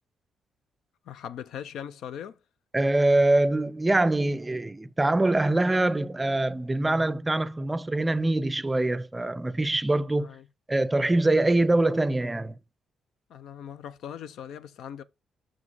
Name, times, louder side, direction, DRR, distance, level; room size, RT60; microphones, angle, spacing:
voice 1, 1.0-2.4 10.2-10.5 13.3-15.0, left 9 dB, 80° left, 0.5 m, -40 dB
voice 2, 2.7-10.3 10.7-12.5, right 2 dB, 15° right, 0.4 m, -24 dB
6.1 x 4.9 x 4.0 m
cardioid pair, 90°, 0 cm